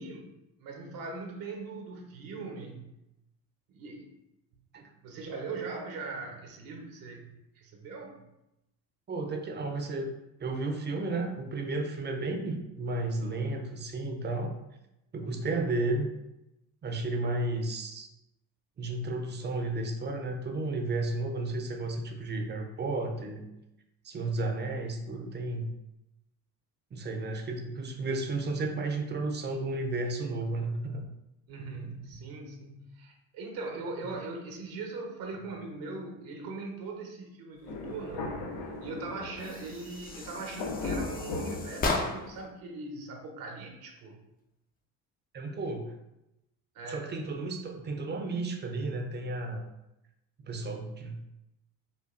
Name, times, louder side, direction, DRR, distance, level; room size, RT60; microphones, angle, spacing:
voice 1, 0.0-2.9 3.7-4.1 4.5-8.2 31.5-38.3 38.8-44.2 46.7-47.1, right 3 dB, 65° right, 2 dB, 0.8 m, -40 dB
voice 2, 9.1-10.1 10.4-14.5 15.1-16.1 16.8-18.1 18.8-23.4 24.0-25.7 26.9-31.1 34.0-34.1 45.3-45.9 46.9-49.7 50.4-51.2, right 2 dB, 30° right, 4 dB, 0.5 m, -33 dB
Thunder, 37.6-42.4, left 3 dB, 80° left, 0.7 m, -38 dB
sound 1, 39.4-42.5, left 3 dB, 25° left, 0.4 m, -35 dB
5.1 x 2.3 x 2.5 m, 0.88 s
supercardioid pair, 90°, 37 cm